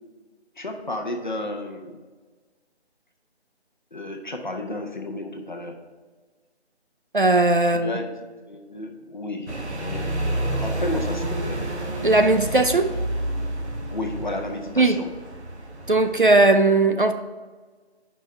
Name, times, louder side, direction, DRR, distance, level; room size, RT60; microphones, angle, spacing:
voice 1, 0.6-2.0 3.9-5.8 7.6-8.1 8.5-11.6 13.9-15.1, left 2 dB, 45° left, 3 dB, 0.8 m, -32 dB
voice 2, 7.1-8.0 12.0-12.9 14.8-15.0 15.9-17.1, right 2 dB, 50° right, 7 dB, 0.4 m, -18 dB
sound 1, 9.5-16.1, right 1 dB, 80° right, 1.3 m, -29 dB
5.5 x 5.3 x 5.5 m, 1.4 s
figure-of-eight pair, 175°, 33 cm